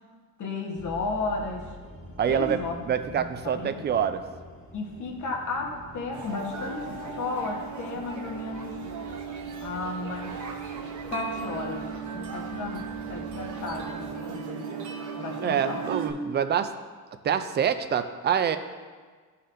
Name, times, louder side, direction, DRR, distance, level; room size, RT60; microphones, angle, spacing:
voice 1, 0.4-1.7 2.3-3.9 4.7-8.8 9.6-10.7 11.1-14.8 15.1-15.9, left 3 dB, 60° left, 1 dB, 1.3 m, -34 dB
sound 1, 0.8-14.1, equal, 25° left, 1.2 m, -47 dB
voice 2, 2.2-2.6 2.9-4.2 15.4-16.7 17.2-18.6, right 8 dB, 30° right, 10 dB, 0.4 m, -26 dB
sound 2, 6.1-16.1, right 6 dB, 55° right, 0.8 m, -36 dB
12.5 x 4.2 x 2.6 m, 1.5 s
cardioid pair, 125°, 34 cm